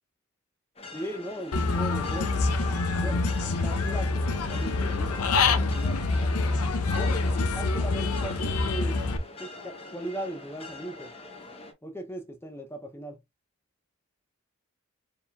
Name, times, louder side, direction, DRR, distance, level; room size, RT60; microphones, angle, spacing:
sound 1, 0.8-11.7, left 2 dB, 25° left, 0.8 m, -44 dB
voice 1, 0.9-2.3 2.9-6.0 6.9-9.0 9.4-11.1 11.8-13.2, right 1 dB, 10° left, 0.5 m, -38 dB
Human voice / Bird, 1.5-9.2, left 3 dB, 80° left, 0.6 m, -26 dB
4.5 x 3.5 x 2.2 m
head